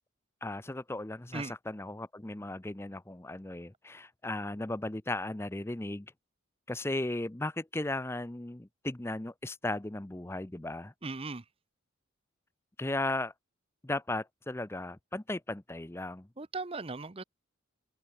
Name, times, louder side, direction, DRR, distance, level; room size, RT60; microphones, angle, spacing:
voice 1, 0.4-6.1 6.7-10.9 12.8-13.3 13.8-16.3, left 2 dB, 10° left, 0.6 m, -36 dB
voice 2, 11.0-11.4 16.4-17.2, right 3 dB, 25° right, 0.7 m, -38 dB
open air
head